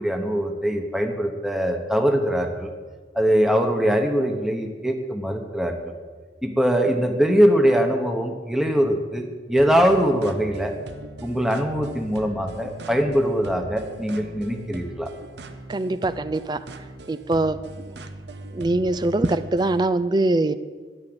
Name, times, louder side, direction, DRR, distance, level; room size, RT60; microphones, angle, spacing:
voice 1, 0.0-2.7 3.1-5.9 6.4-10.7 11.2-15.1, equal, ahead, 4 dB, 1.1 m, -22 dB
sound 1, 9.6-19.9, right 2 dB, 75° right, 1.1 m, -40 dB
voice 2, 15.7-16.6 17.1-17.6 18.5-20.5, right 2 dB, 25° right, 12 dB, 0.4 m, -22 dB
12.5 x 10.5 x 7.9 m, 1.5 s
head